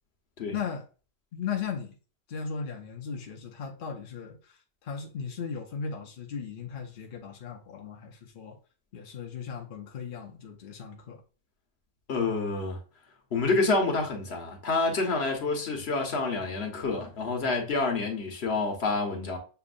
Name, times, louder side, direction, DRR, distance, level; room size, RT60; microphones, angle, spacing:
voice 1, 0.5-0.9 1.3-1.9 2.3-8.6 8.9-11.2, left 6 dB, 55° left, 0.8 m, -37 dB
voice 2, 12.1-12.8 13.3-19.4, left 3 dB, 75° left, 1.3 m, -28 dB
6.8 x 2.6 x 2.5 m
omnidirectional pair, 1.1 m